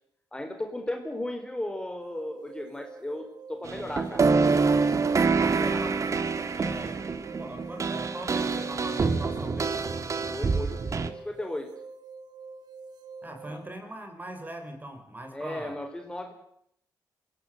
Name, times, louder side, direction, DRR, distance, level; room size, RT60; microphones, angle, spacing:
voice 1, 0.3-4.3 5.4-5.8 10.2-11.7 13.5-13.6 15.3-16.3, left 1 dB, 10° left, 4 dB, 4.2 m, -35 dB
sound 1, 2.0-13.7, right 4 dB, 65° right, 1.8 m, -46 dB
sound 2, 3.6-11.1, right 4 dB, 45° right, 2.0 m, -26 dB
voice 2, 5.3-6.2 6.6-7.1 7.4-9.9 13.2-15.8, right 1 dB, 25° right, 6 dB, 5.6 m, -41 dB
25.5 x 17.5 x 8.0 m, 0.72 s
cardioid pair, 90°, 8 cm